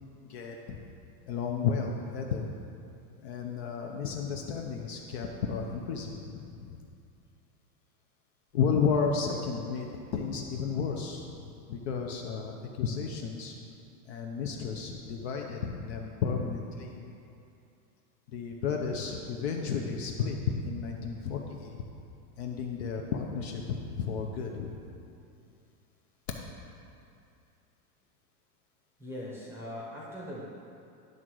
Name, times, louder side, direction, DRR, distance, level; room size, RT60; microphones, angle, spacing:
voice 1, 1.3-2.5 3.2-6.7 8.5-9.9 10.1-11.2 11.7-13.5 14.1-16.9 18.3-20.4 20.6-21.8 22.4-24.8, left 6 dB, 45° left, 1 dB, 0.6 m, -32 dB
voice 2, 29.0-30.4, left 1 dB, 5° right, -5 dB, 0.8 m, -40 dB
10.5 x 3.8 x 6.1 m, 2.6 s
supercardioid pair, 170°, 48 cm